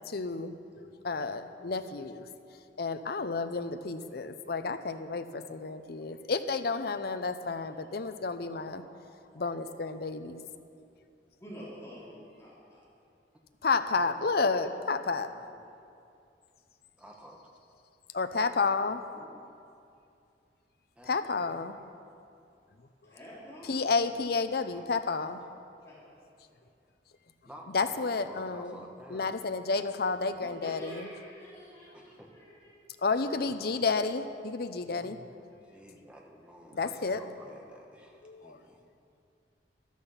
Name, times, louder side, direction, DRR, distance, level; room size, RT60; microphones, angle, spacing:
voice 1, 0.1-2.2 2.8-8.8 9.3-10.4 13.6-15.3 18.1-19.0 21.1-21.7 23.7-25.4 27.7-28.8 29.1-31.0 33.0-35.2 36.7-37.2 38.2-38.6, left 4 dB, 60° left, 10 dB, 0.7 m, -31 dB
voice 2, 7.6-7.9 8.4-8.9 9.2-9.5 11.4-12.8 23.0-23.8 25.8-26.2 30.4-32.7 33.4-33.9, equal, 15° left, -9 dB, 3.6 m, -49 dB
voice 3, 13.9-14.8 15.1-15.6 17.0-17.5 19.1-19.4 21.0-21.7 24.7-25.5 27.4-29.3 31.9-32.6 35.6-38.8, equal, 5° right, 0 dB, 1.3 m, -52 dB
13.5 x 12.5 x 5.7 m, 2.5 s
head